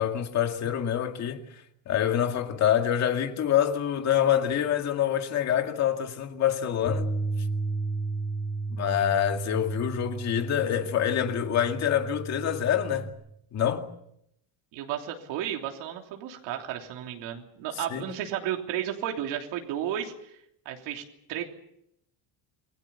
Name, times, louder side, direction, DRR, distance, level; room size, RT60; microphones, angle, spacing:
voice 1, 0.0-1.4 1.9-7.1 8.7-13.1 13.5-13.9 17.9-18.0, left 10 dB, 35° left, 2.2 m, -26 dB
Bass guitar, 6.9-13.1, right 3 dB, 5° left, 7.2 m, -33 dB
voice 2, 14.7-20.1 20.6-21.0 21.3-21.4, right 11 dB, 65° right, 3.3 m, -33 dB
28.0 x 20.0 x 7.1 m
cardioid pair, 180°, 45 cm